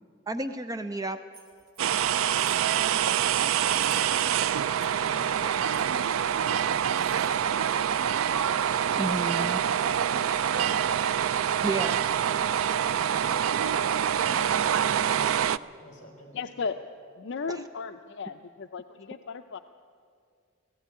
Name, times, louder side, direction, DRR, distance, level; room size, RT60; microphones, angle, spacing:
voice 1, 0.3-1.2 9.0-9.6 11.6-12.0 17.5-17.6, right 2 dB, 20° right, 9 dB, 0.6 m, -31 dB
sound 1, 1.3-1.8 2.3-2.7 3.6-4.2 4.8-5.0 5.7-6.1 6.9-7.4, right 4 dB, 65° right, 2.6 m, -49 dB
sound 2, 1.8-15.6, right 9 dB, 85° right, 0.4 m, -26 dB
voice 2, 2.8-3.3 5.0-7.7 10.4-10.7 14.2-15.4 15.8-16.4, equal, 40° left, 2 dB, 4.6 m, -48 dB
voice 3, 16.3-16.8 17.2-19.6, left 5 dB, 60° left, 7 dB, 0.6 m, -35 dB
17.0 x 16.0 x 9.6 m, 2.3 s
head